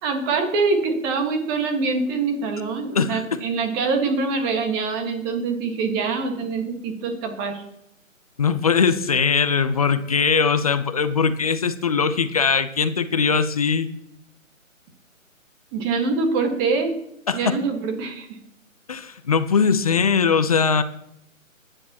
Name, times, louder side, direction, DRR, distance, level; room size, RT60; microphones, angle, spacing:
voice 1, 0.0-7.6 15.7-17.0 17.3-18.3, right 4 dB, 15° right, 4 dB, 1.6 m, -24 dB
voice 2, 8.4-13.9 17.3-17.5 18.9-20.8, left 5 dB, 30° left, 11 dB, 0.7 m, -20 dB
21.5 x 10.0 x 3.0 m, 0.77 s
figure-of-eight pair, 155°, 40 cm